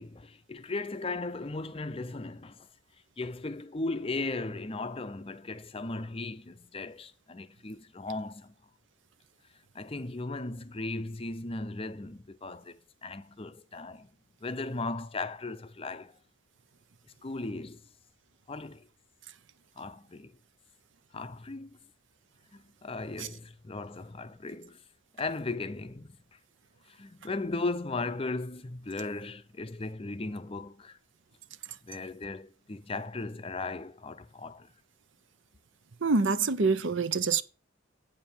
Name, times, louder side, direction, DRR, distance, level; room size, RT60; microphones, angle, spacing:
voice 1, 0.0-2.7 3.2-8.5 9.7-14.1 14.4-16.2 17.2-17.8 18.5-18.9 19.8-20.4 21.1-21.8 22.5-24.8 25.2-26.4 26.9-31.0 31.8-34.7, left 3 dB, 25° left, 0.5 m, -37 dB
voice 2, 36.0-37.4, right 4 dB, 65° right, 0.7 m, -26 dB
8.8 x 7.1 x 4.4 m
head